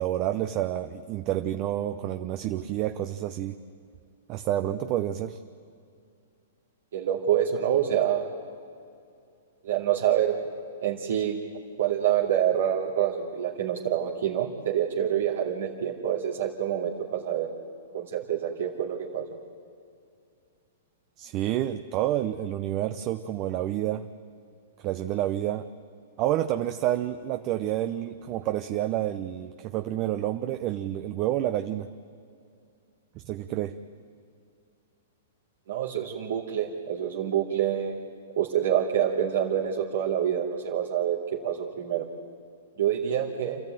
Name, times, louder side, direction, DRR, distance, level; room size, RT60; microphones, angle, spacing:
voice 1, 0.0-3.6 4.3-5.4 21.2-24.1 24.8-25.7 26.2-31.9 33.2-33.8, right 13 dB, 35° right, 8 dB, 0.7 m, -29 dB
voice 2, 6.9-8.3 9.6-10.3 10.8-11.4 11.8-17.5 17.9-19.3 35.7-38.0 38.4-41.2 41.4-42.0 42.8-43.6, right 10 dB, 75° right, -4 dB, 2.6 m, -26 dB
28.0 x 13.0 x 9.2 m, 2.4 s
hypercardioid pair, 135°, 0 cm